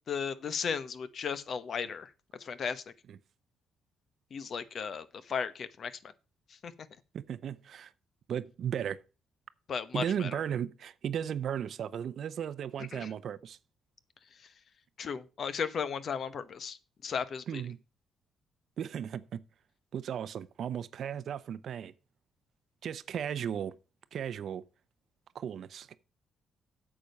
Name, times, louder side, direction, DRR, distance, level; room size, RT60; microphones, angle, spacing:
voice 1, 0.1-2.1 2.4-2.8 4.3-6.0 6.6-6.7 9.7-10.4 12.9-13.1 15.0-16.8 17.0-17.6, left 6 dB, 55° left, 0.9 m, -35 dB
voice 2, 7.1-7.9 8.3-9.0 9.9-13.6 17.5-17.8 18.8-19.4 19.9-21.9 22.8-23.7 24.1-24.6 25.3-25.9, right 9 dB, 65° right, 0.6 m, -35 dB
8.7 x 6.9 x 5.3 m
cardioid pair, 90°, 0 cm